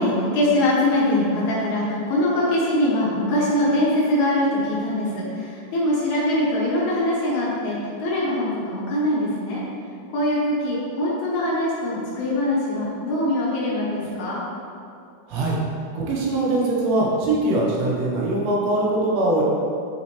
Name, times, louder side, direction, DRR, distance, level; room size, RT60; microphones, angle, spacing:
voice 1, 0.0-9.6 10.1-14.4, left 1 dB, 65° left, -6 dB, 2.5 m, -22 dB
voice 2, 16.0-19.4, right 2 dB, 75° right, -4 dB, 3.5 m, -22 dB
9.6 x 7.8 x 3.4 m, 2.6 s
omnidirectional pair, 5.9 m